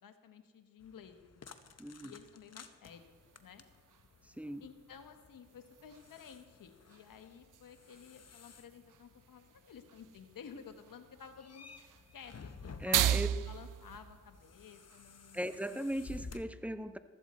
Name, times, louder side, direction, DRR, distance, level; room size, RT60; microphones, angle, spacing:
voice 1, 0.0-3.6 4.6-11.7 12.1-15.8, left 7 dB, 85° left, 8 dB, 1.1 m, -54 dB
sound 1, 0.8-16.4, left 4 dB, 50° left, 1.0 m, -55 dB
voice 2, 1.8-2.2 4.2-4.6 12.8-13.3 15.3-17.0, equal, 5° right, 11 dB, 0.9 m, -38 dB
sound 2, 2.9-15.6, right 10 dB, 75° right, 0.5 m, -40 dB
15.0 x 13.5 x 4.2 m, 1.4 s
cardioid pair, 45°, 32 cm